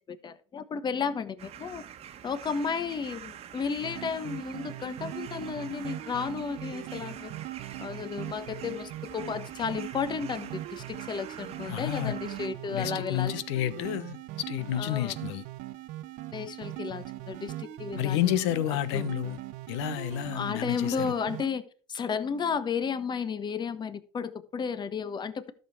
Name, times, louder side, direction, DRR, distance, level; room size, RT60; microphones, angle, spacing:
voice 1, 0.0-1.8 2.2-7.3 7.8-13.3 14.7-15.2 16.3-18.4 18.7-19.2 20.3-25.5, left 6 dB, 30° left, 1.2 m, -33 dB
sound 1, 1.4-12.5, right 9 dB, 45° right, 1.2 m, -46 dB
sound 2, 3.8-21.5, right 15 dB, 65° right, 0.9 m, -40 dB
voice 2, 11.7-12.2 12.7-15.4 17.9-19.4 19.7-21.1, left 13 dB, 75° left, 0.9 m, -30 dB
12.5 x 6.7 x 4.5 m
hypercardioid pair, 90°, 14 cm